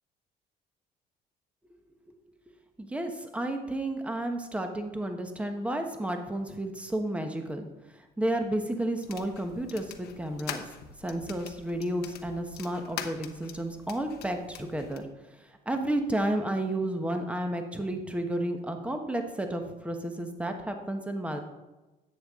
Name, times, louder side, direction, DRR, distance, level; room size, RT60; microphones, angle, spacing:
voice 1, 2.8-7.7 8.2-10.6 11.0-15.0 15.7-21.4, right 1 dB, 5° right, 5 dB, 1.1 m, -32 dB
sound 1, 9.0-15.0, left 9 dB, 70° left, 1.0 m, -43 dB
10.5 x 8.0 x 3.7 m, 1.1 s
cardioid pair, 110°, 17 cm